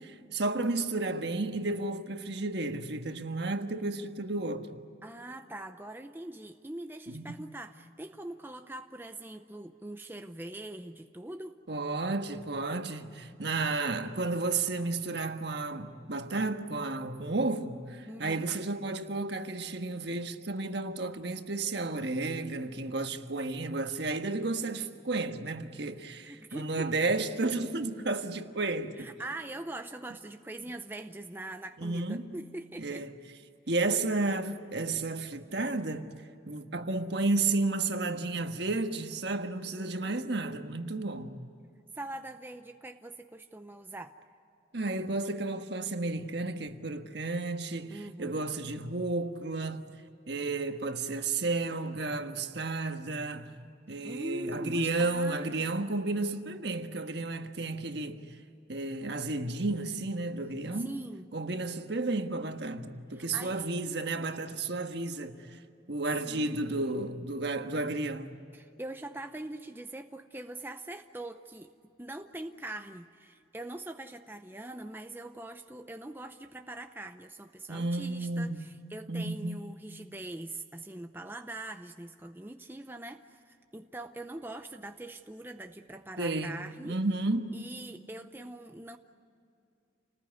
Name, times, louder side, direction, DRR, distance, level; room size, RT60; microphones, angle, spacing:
voice 1, 0.0-4.8 7.1-7.2 11.7-29.1 31.8-32.3 32.8-33.2 33.7-36.1 36.5-41.4 44.7-49.8 50.3-53.5 53.9-58.2 58.7-60.9 61.3-65.6 65.9-68.4 77.7-78.6 79.1-79.6 86.2-86.6 86.8-87.7, right 2 dB, 60° right, 1.5 m, -32 dB
voice 2, 5.0-11.6 18.1-18.5 26.3-26.7 29.0-33.1 39.7-40.2 41.9-44.1 47.9-48.5 54.0-56.0 60.7-61.3 63.1-63.7 66.3-66.7 68.5-71.7 72.0-87.0 87.5-89.0, right 1 dB, 10° right, 0.6 m, -42 dB
29.0 x 20.0 x 9.4 m
head